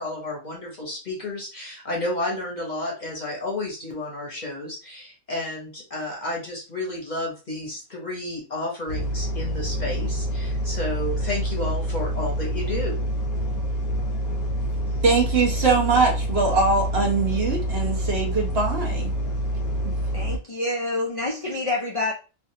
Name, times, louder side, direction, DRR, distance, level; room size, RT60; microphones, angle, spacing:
voice 1, 0.0-13.0, left 2 dB, 35° left, -1 dB, 0.9 m, -31 dB
sound 1, 8.9-20.4, equal, 80° left, 1.2 m, -27 dB
voice 2, 15.0-19.1 19.8-19.9, right 4 dB, 50° right, 0 dB, 1.0 m, -22 dB
voice 3, 20.1-22.1, left 2 dB, 60° left, -3 dB, 0.3 m, -27 dB
3.3 x 2.4 x 2.7 m, 0.32 s
omnidirectional pair, 1.5 m